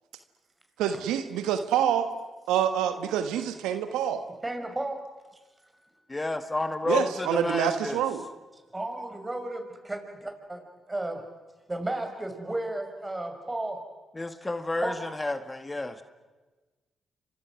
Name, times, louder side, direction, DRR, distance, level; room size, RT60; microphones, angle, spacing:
voice 1, 0.8-2.1 2.5-4.2 6.9-8.2, right 9 dB, 80° right, 9 dB, 1.3 m, -26 dB
voice 2, 4.4-5.0 8.7-10.6 10.9-11.2 11.7-13.8 14.8-14.9, right 1 dB, 20° right, 5 dB, 6.0 m, -33 dB
voice 3, 6.1-8.0 14.1-16.0, left 2 dB, 25° left, 9 dB, 1.8 m, -30 dB
30.0 x 25.5 x 6.3 m, 1.2 s
hypercardioid pair, 45°, 0 cm